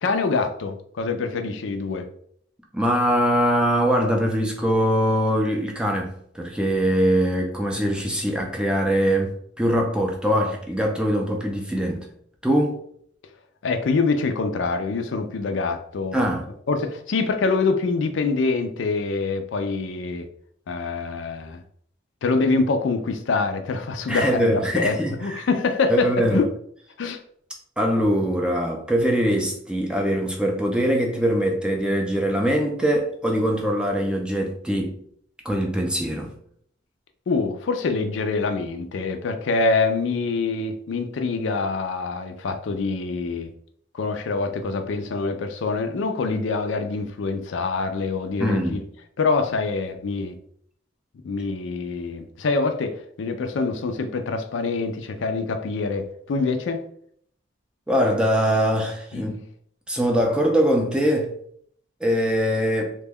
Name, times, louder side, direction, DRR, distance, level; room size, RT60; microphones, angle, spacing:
voice 1, 0.0-2.1 13.6-16.2 16.7-20.3 20.7-21.6 22.2-26.5 27.0-27.2 37.3-43.5 43.9-48.8 49.2-50.4 51.2-56.8 59.1-59.2, left 4 dB, 70° left, 0.4 m, -25 dB
voice 2, 2.7-12.1 12.4-12.8 16.1-16.4 24.1-25.5 25.9-26.5 27.8-35.0 35.4-36.3 48.4-48.8 57.9-59.4 59.9-61.3 62.0-63.0, equal, 5° right, 0.4 m, -22 dB
2.9 x 2.1 x 3.4 m
head